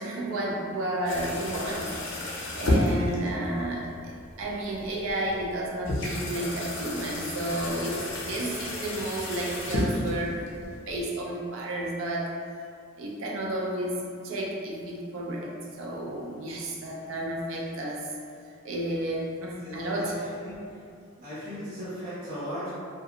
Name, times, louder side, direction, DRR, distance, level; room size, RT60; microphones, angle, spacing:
voice 1, 0.0-12.3 13.0-18.1 18.6-20.2, right 1 dB, 90° right, -2 dB, 0.5 m, -32 dB
sound 1, 1.1-11.1, left 1 dB, 70° left, 0.5 m, -32 dB
voice 2, 19.6-20.7 21.2-22.7, equal, 45° right, -12 dB, 1.1 m, -37 dB
2.4 x 2.2 x 2.7 m, 2.3 s
head